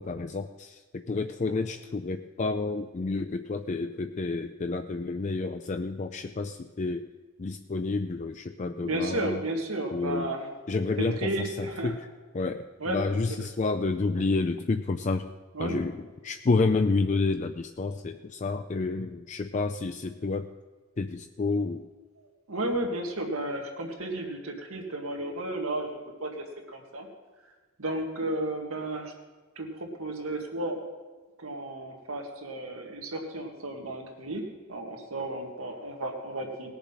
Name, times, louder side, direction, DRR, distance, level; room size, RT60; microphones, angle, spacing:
voice 1, 0.0-7.1 7.4-9.4 9.9-10.3 10.7-12.0 12.3-15.3 15.6-16.0 16.2-20.5 21.0-21.9, left 3 dB, 35° left, 7 dB, 0.4 m, -29 dB
voice 2, 8.8-10.5 11.0-11.9 12.8-13.0 15.5-15.8 22.5-27.1 27.8-29.1 29.6-30.8 31.4-34.4 34.7-36.7, right 1 dB, 85° right, 2 dB, 2.0 m, -33 dB
19.0 x 7.0 x 5.7 m, 1.4 s
head